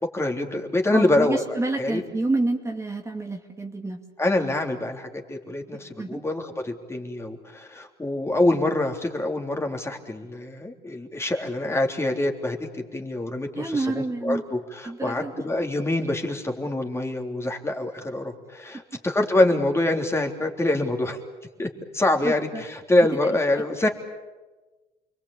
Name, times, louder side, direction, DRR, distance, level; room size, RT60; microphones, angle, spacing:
voice 1, 0.0-1.4 1.8-2.0 4.2-21.2 21.6-21.7 21.9-23.9, left 1 dB, 15° left, 3 dB, 3.4 m, -25 dB
voice 2, 0.9-4.0 6.0-6.2 13.5-14.4 14.8-15.4 22.2-22.6, right 2 dB, 15° right, 2 dB, 2.5 m, -28 dB
29.5 x 22.5 x 8.6 m, 1.2 s
cardioid pair, 110°, 17 cm